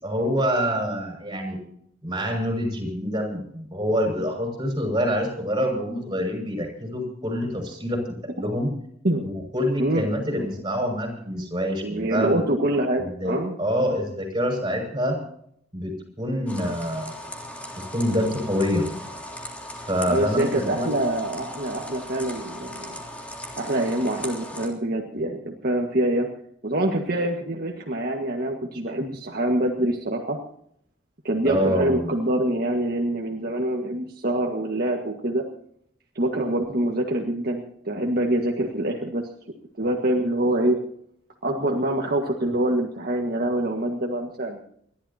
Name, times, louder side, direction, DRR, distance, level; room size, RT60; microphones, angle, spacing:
voice 1, 0.0-1.6 2.0-8.7 9.2-12.4 12.9-15.2 15.7-17.2 17.9-18.8 19.9-20.9 31.4-32.2, equal, 25° right, 2 dB, 6.1 m, -26 dB
voice 2, 9.8-10.5 11.8-13.5 20.1-22.9 23.6-26.3 26.6-30.4 31.2-35.4 36.2-39.3 39.8-40.8 41.4-44.6, right 1 dB, 55° right, 0 dB, 1.8 m, -25 dB
sound 1, 16.5-24.7, left 1 dB, 10° left, 3.3 m, -38 dB
29.5 x 12.5 x 2.9 m, 0.68 s
head